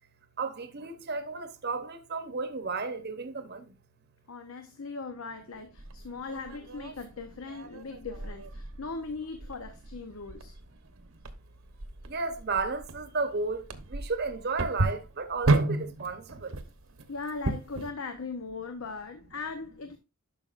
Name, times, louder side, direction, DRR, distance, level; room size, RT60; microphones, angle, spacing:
voice 1, 0.4-3.7 11.0-11.1 12.1-16.6, right 4 dB, 50° right, 0.9 m, -33 dB
voice 2, 4.3-10.6 17.1-20.0, left 4 dB, 75° left, 0.8 m, -39 dB
sound 1, 5.8-17.9, right 2 dB, 75° right, 1.0 m, -33 dB
11.0 x 5.8 x 2.5 m
head